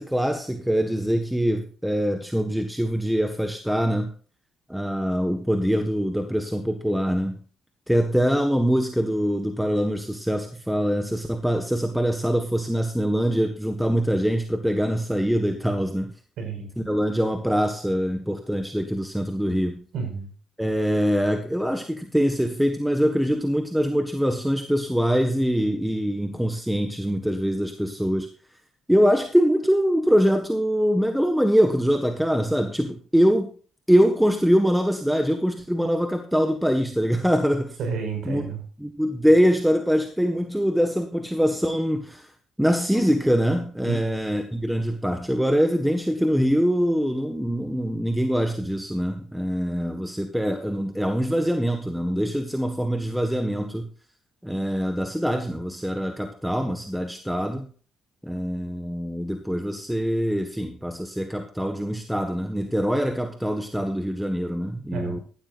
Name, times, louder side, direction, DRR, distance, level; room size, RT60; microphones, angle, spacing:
voice 1, 0.0-4.1 4.7-7.4 7.9-16.1 16.8-19.8 20.6-28.3 28.9-33.5 33.9-37.8 38.2-38.4 38.8-42.3 42.6-53.9 54.4-57.7 58.2-65.2, equal, 5° right, 6 dB, 1.4 m, -23 dB
voice 2, 16.4-16.7 19.9-20.3 37.8-38.6 43.9-44.3 64.9-65.2, right 5 dB, 75° right, 5 dB, 5.4 m, -31 dB
14.5 x 12.0 x 2.5 m, 0.41 s
cardioid pair, 90°, 0 cm